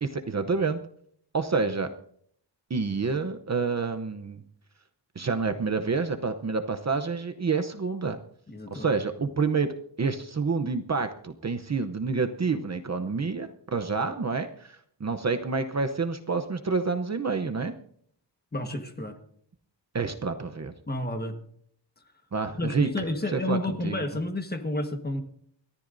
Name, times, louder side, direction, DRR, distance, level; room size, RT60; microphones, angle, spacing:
voice 1, 0.0-0.8 1.3-1.9 2.7-4.4 5.2-8.2 8.7-17.7 19.9-20.7 22.3-22.9 23.3-24.0, right 4 dB, 40° right, 7 dB, 0.7 m, -28 dB
voice 2, 8.5-8.9 18.5-19.2 20.9-21.4 22.6-25.2, left 1 dB, 20° left, 6 dB, 1.4 m, -30 dB
28.5 x 13.5 x 2.6 m, 0.64 s
wide cardioid pair, 175°, 43 cm